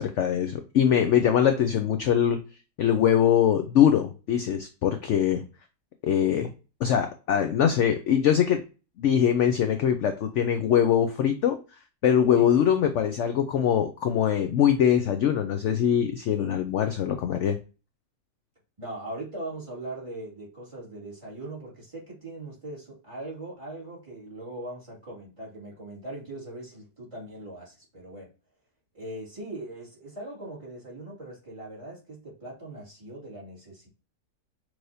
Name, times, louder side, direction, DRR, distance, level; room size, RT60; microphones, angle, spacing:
voice 1, 0.0-2.4 2.8-5.4 6.0-6.5 6.8-8.6 9.0-11.6 12.0-17.6, left 9 dB, 65° left, 7 dB, 0.7 m, -22 dB
voice 2, 18.8-28.3 28.9-33.9, right 1 dB, 20° right, -6 dB, 2.2 m, -40 dB
6.1 x 3.2 x 2.6 m, 0.32 s
omnidirectional pair, 1.7 m